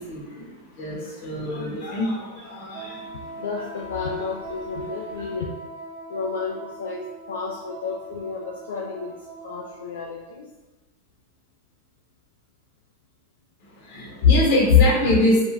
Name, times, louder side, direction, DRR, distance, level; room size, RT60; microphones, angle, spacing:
voice 1, 0.0-3.6 4.0-4.1 5.2-5.3 13.7-15.4, left 3 dB, 55° left, -4 dB, 0.8 m, -22 dB
Wind instrument woodwind instrument, 2.7-10.1, right 2 dB, 70° right, 0.6 m, -40 dB
voice 2, 3.4-5.5 6.1-10.5, left 4 dB, 85° left, -1 dB, 0.3 m, -32 dB
2.4 x 2.2 x 3.2 m, 1.1 s
hypercardioid pair, 115°, 0 cm